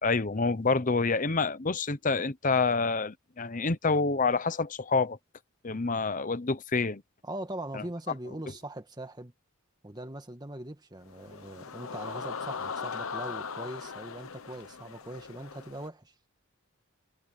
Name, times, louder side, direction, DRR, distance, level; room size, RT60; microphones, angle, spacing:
voice 1, 0.0-5.2 5.6-7.0 7.7-7.8, left 4 dB, 40° left, 0.9 m, -27 dB
voice 2, 7.2-9.3 9.8-16.1, right 1 dB, 20° right, 2.0 m, -41 dB
sound 1, 11.1-15.9, left 5 dB, 75° left, 1.0 m, -39 dB
head